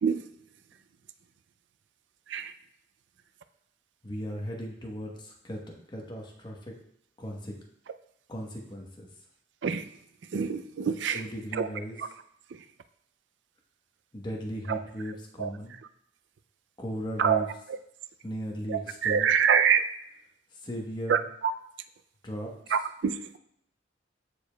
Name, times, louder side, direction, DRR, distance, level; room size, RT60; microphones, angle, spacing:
voice 1, 4.0-5.6 5.9-6.7 7.2-7.5 8.3-9.1 11.1-12.0 14.1-15.8 16.8-17.5 18.2-19.3 20.6-21.3 22.2-22.8, equal, 25° left, 1.1 m, -37 dB
voice 2, 10.3-11.2 11.6-11.7 14.7-14.8 15.4-15.5 17.2-17.4 18.7-19.8 21.1-21.2 22.7-23.1, right 7 dB, 80° right, 0.4 m, -24 dB
14.0 x 5.0 x 2.3 m
head